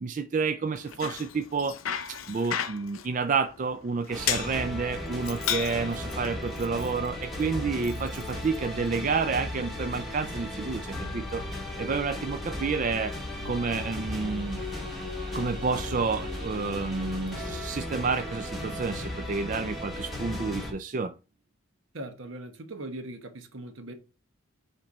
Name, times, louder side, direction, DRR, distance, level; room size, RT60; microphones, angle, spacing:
voice 1, 0.0-1.8 2.1-11.4 11.8-13.1 13.4-14.6 15.3-21.1, right 4 dB, 40° right, 0.4 m, -30 dB
Bicycle, 0.7-9.1, left 9 dB, 80° left, 0.7 m, -36 dB
sound 1, 4.1-20.7, left 1 dB, ahead, 1.9 m, -36 dB
voice 2, 21.9-23.9, right 1 dB, 70° right, 1.0 m, -40 dB
7.6 x 3.3 x 4.1 m
head